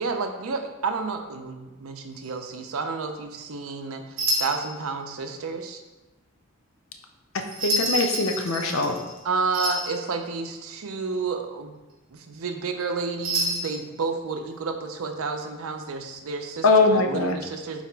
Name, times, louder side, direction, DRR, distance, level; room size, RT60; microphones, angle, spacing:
voice 1, 0.0-5.8 9.2-11.7 12.1-17.8, right 4 dB, 85° right, 5 dB, 0.5 m, -30 dB
sound 1, 2.1-2.5 4.2-4.8 7.5-9.2 9.5-10.0 13.2-13.8, right 1 dB, 40° right, 1.0 m, -28 dB
voice 2, 7.6-9.0 16.6-17.4, left 3 dB, 70° left, 5 dB, 0.5 m, -21 dB
4.1 x 2.9 x 4.6 m, 1.1 s
head